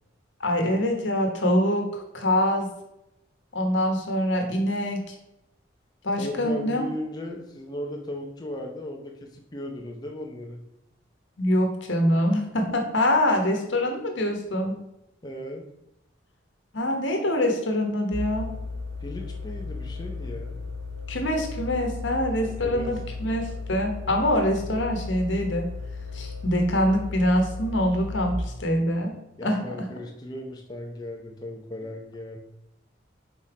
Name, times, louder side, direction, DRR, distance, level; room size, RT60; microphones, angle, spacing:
voice 1, 0.4-2.7 3.5-5.2 6.0-6.9 11.4-14.8 16.7-18.5 21.1-25.7 26.1-29.1 29.4-29.9, left 1 dB, 75° left, 3 dB, 1.3 m, -24 dB
voice 2, 6.2-10.6 15.2-15.6 19.0-20.6 22.4-22.9 29.4-32.4, left 1 dB, 20° left, 0 dB, 0.7 m, -36 dB
sound 1, 18.1-28.3, left 3 dB, 80° right, 1.1 m, -35 dB
5.5 x 4.2 x 4.8 m, 0.85 s
head